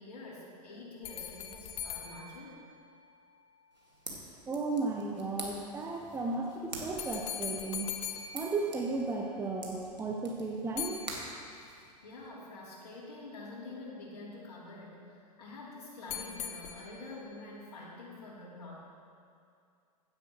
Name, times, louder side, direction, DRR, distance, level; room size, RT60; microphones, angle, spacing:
voice 1, 0.0-2.5 12.0-18.8, left 2 dB, 60° left, -9 dB, 3.1 m, -47 dB
sound 1, 1.0-3.4 7.0-9.5 10.8-12.0 16.1-17.3, left 9 dB, 30° left, 0.8 m, -42 dB
sound 2, 3.7-12.3, right 1 dB, 90° right, 1.9 m, -47 dB
voice 2, 4.5-7.9 8.3-11.0, right 3 dB, 10° right, 0 dB, 0.7 m, -34 dB
16.0 x 9.8 x 3.1 m, 2.4 s
figure-of-eight pair, 100°, 21 cm